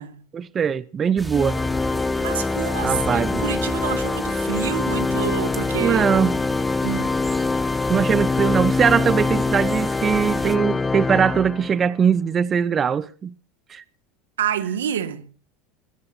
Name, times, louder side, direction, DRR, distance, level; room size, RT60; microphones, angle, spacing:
voice 1, 0.3-1.6 2.8-3.4 5.8-6.4 7.9-13.3 13.7-13.8, right 7 dB, 30° right, 0.8 m, -21 dB
sound 1, 1.2-10.6, right 1 dB, 10° right, 3.3 m, -34 dB
Organ, 1.3-12.0, left 3 dB, 15° left, 0.7 m, -24 dB
voice 2, 2.2-6.0 6.8-7.2 14.4-15.3, right 9 dB, 85° right, 2.0 m, -28 dB
22.0 x 16.5 x 2.8 m
hypercardioid pair, 90°, 0 cm